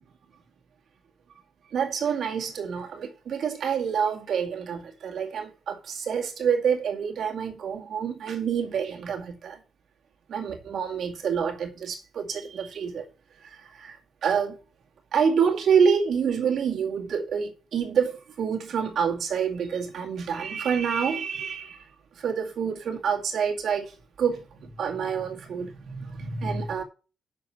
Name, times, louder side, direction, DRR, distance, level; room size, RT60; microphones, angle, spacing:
voice 1, 1.7-9.6 10.3-13.1 13.4-14.6 15.1-21.8 22.2-23.9 24.2-26.8, right 6 dB, 65° right, 2.2 m, -27 dB
7.5 x 6.0 x 7.2 m
cardioid pair, 130°, 0 cm